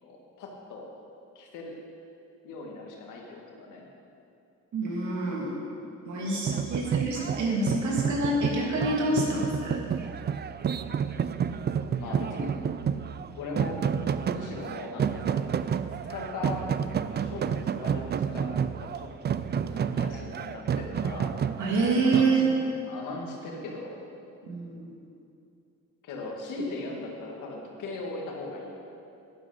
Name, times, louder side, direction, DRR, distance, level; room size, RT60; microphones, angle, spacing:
voice 1, 0.0-0.9 1.4-1.8 2.4-3.8 12.0-12.6 13.4-13.8 14.2-15.4 16.1-16.8 17.1-21.3 22.0-22.5 22.9-24.0 26.0-28.7, left 3 dB, 90° left, -1 dB, 2.2 m, -39 dB
voice 2, 4.7-5.6 6.0-9.8 21.6-22.4 24.4-24.9, right 2 dB, 70° right, -3 dB, 3.1 m, -27 dB
sound 1, 6.5-22.2, right 7 dB, 35° right, 0.4 m, -30 dB
11.5 x 11.0 x 5.1 m, 2.6 s
cardioid pair, 90°, 30 cm